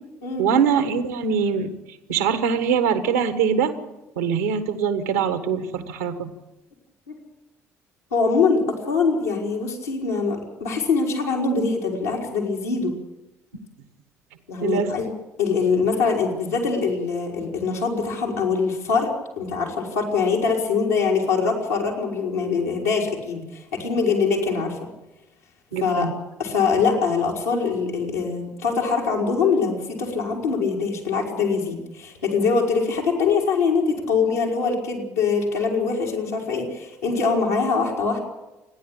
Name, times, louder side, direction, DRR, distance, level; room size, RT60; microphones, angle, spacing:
voice 1, 0.4-1.7 2.1-3.7 4.2-6.3 14.6-14.9 25.7-26.1, right 7 dB, 80° right, 10 dB, 1.6 m, -22 dB
voice 2, 8.1-12.9 14.5-15.1 15.4-24.8 25.8-26.1 26.4-38.2, left 5 dB, 80° left, -3 dB, 4.3 m, -23 dB
28.5 x 11.0 x 8.8 m, 1.0 s
figure-of-eight pair, 50°, 8 cm